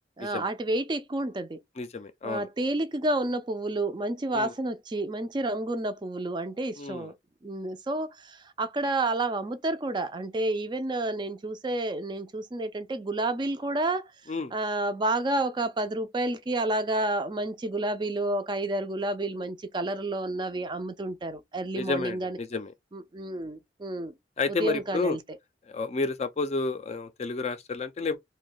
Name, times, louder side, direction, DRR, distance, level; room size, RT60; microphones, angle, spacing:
voice 1, 0.2-1.6 2.2-7.1 7.4-14.1 14.5-22.4 22.9-24.1 24.5-25.2, right 2 dB, 25° right, 0.4 m, -30 dB
voice 2, 1.8-2.5 4.3-4.5 6.8-7.1 14.3-14.5 21.8-22.7 24.4-25.2 25.7-28.2, left 3 dB, 35° left, 0.4 m, -30 dB
2.8 x 2.2 x 3.8 m
head